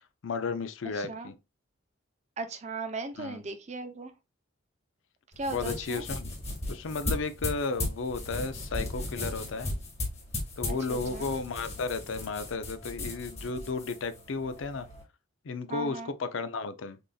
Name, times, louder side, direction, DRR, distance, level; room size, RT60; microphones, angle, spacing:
voice 1, 0.0-1.3 3.2-3.4 5.5-6.3 6.7-9.7 10.6-14.9 15.4-17.0, left 4 dB, 70° left, 0.5 m, -34 dB
voice 2, 1.0-1.3 2.4-4.1 5.4-6.1 10.7-11.3 15.7-16.1, right 3 dB, 35° right, 0.6 m, -37 dB
sound 1, 5.3-15.0, left 2 dB, 30° left, 1.7 m, -37 dB
6.5 x 2.7 x 2.3 m
head